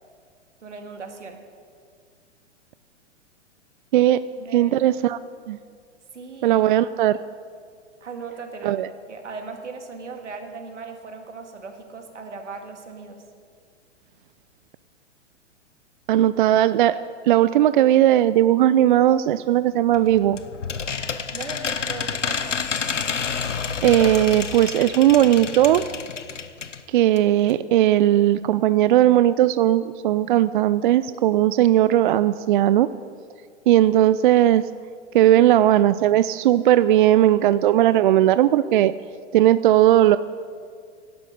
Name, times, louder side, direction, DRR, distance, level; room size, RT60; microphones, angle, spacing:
voice 1, 0.6-1.4 4.4-4.8 6.1-6.6 8.0-8.8 9.1-13.2 21.3-22.5, right 4 dB, 75° right, 5 dB, 2.1 m, -37 dB
voice 2, 4.5-5.2 5.5-5.6 6.4-7.2 8.6-8.9 16.1-17.0 17.2-20.4 23.8-25.8 26.9-32.9 33.7-34.6 35.1-38.9 39.3-40.2, right 12 dB, 45° right, 15 dB, 0.4 m, -17 dB
sound 1, 19.9-26.8 27.2-27.3 27.5-27.6, left 6 dB, 85° left, 1.0 m, -29 dB
17.5 x 11.5 x 5.4 m, 2.1 s
figure-of-eight pair, 110°, 36 cm